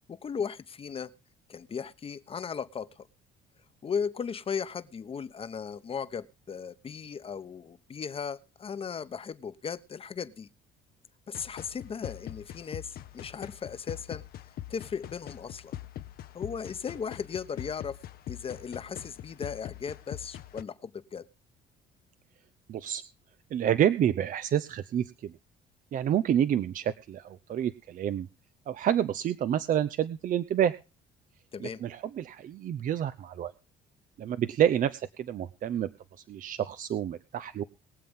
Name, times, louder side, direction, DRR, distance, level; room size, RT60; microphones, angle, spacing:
voice 1, 0.1-1.1 1.5-3.1 3.8-10.5 11.3-14.2 14.7-15.7 16.3-18.0 18.3-21.3 31.5-31.8, left 6 dB, 35° left, 1.1 m, -36 dB
sound 1, 11.3-20.6, left 12 dB, 65° left, 1.0 m, -43 dB
voice 2, 22.7-23.0 23.5-25.3 25.9-28.3 28.7-30.7 31.6-33.5 34.2-35.9 36.3-37.6, right 10 dB, 50° right, 0.7 m, -28 dB
22.5 x 7.7 x 3.7 m
cardioid pair, 110°, 17 cm